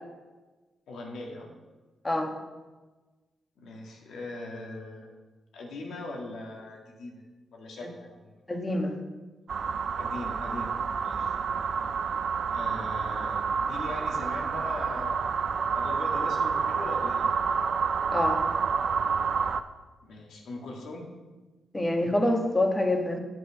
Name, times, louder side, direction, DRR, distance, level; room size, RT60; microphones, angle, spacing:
voice 1, 0.9-1.5 3.6-5.1 5.5-7.2 7.5-8.4 10.0-11.4 11.7-12.0 12.5-17.4 20.0-21.1, left 2 dB, 80° left, 0 dB, 2.0 m, -40 dB
voice 2, 8.5-9.0 18.1-18.4 21.7-23.2, left 1 dB, 20° left, 3 dB, 1.8 m, -26 dB
sound 1, 9.5-19.6, right 6 dB, 65° right, 0.5 m, -29 dB
8.0 x 8.0 x 5.8 m, 1.2 s
cardioid pair, 60°, 0 cm